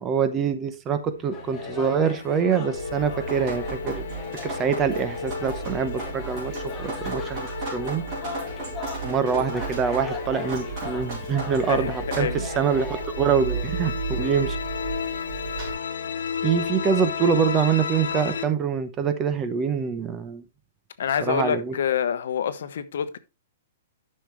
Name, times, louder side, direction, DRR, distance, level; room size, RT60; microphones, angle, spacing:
voice 1, 0.0-4.0 4.4-8.0 9.0-12.9 13.2-14.6 16.4-20.4 21.2-21.7, right 7 dB, 15° right, 0.7 m, -25 dB
sound 1, 1.1-18.4, left 6 dB, 90° left, 1.4 m, -34 dB
sound 2, 1.3-13.0, left 4 dB, 10° left, 1.4 m, -40 dB
Drip, 2.7-15.7, right 4 dB, 30° right, 4.4 m, -34 dB
voice 2, 11.7-12.5 21.0-23.2, left 8 dB, 60° left, 1.0 m, -27 dB
12.0 x 6.5 x 3.1 m
hypercardioid pair, 175°, 0 cm